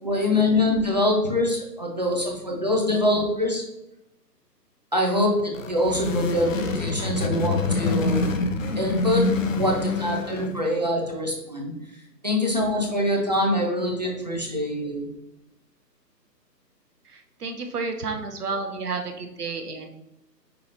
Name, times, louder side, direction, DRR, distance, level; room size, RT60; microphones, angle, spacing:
voice 1, 0.0-3.6 4.9-8.3 8.8-9.3 9.6-11.7 12.2-15.1, left 1 dB, 25° right, -1 dB, 0.5 m, -24 dB
sound 1, 5.4-10.7, left 3 dB, 55° left, 0.5 m, -26 dB
voice 2, 17.1-19.9, right 4 dB, 65° right, 5 dB, 0.8 m, -31 dB
5.7 x 2.7 x 3.2 m, 0.87 s
figure-of-eight pair, 140°, 50 cm